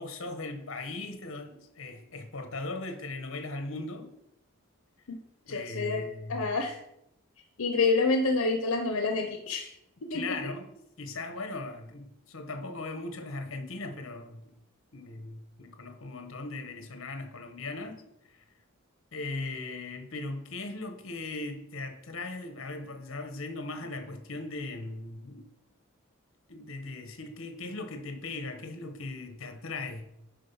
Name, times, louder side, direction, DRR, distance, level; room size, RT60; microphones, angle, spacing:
voice 1, 0.0-4.1 5.4-6.5 10.1-10.6 11.0-14.4 14.9-18.4 19.1-25.4 26.5-30.1, left 2 dB, 65° left, 1.1 m, -38 dB
voice 2, 5.5-6.0 6.3-6.8 7.6-9.7 10.0-10.4, left 3 dB, 85° left, 0.7 m, -28 dB
9.9 x 3.9 x 5.5 m
head